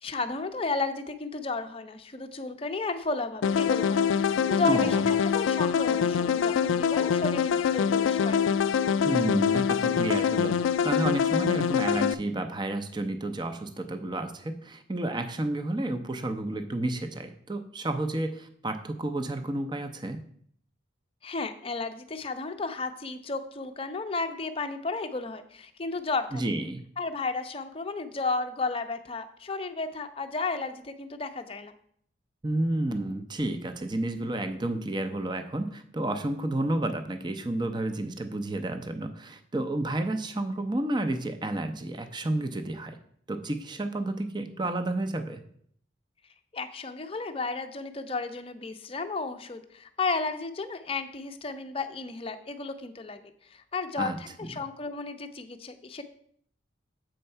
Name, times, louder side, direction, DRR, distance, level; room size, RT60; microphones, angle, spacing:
voice 1, 0.0-8.4 21.2-26.6 27.0-31.7 46.5-53.2 53.5-56.0, left 3 dB, 30° left, 8 dB, 0.5 m, -33 dB
sound 1, 3.4-12.1, left 7 dB, 80° left, 0.3 m, -25 dB
voice 2, 4.7-5.0 9.0-20.2 26.3-26.8 32.4-43.0 43.3-45.4 54.0-54.5, right 1 dB, 25° right, 8 dB, 0.5 m, -31 dB
7.8 x 4.4 x 5.5 m, 0.64 s
head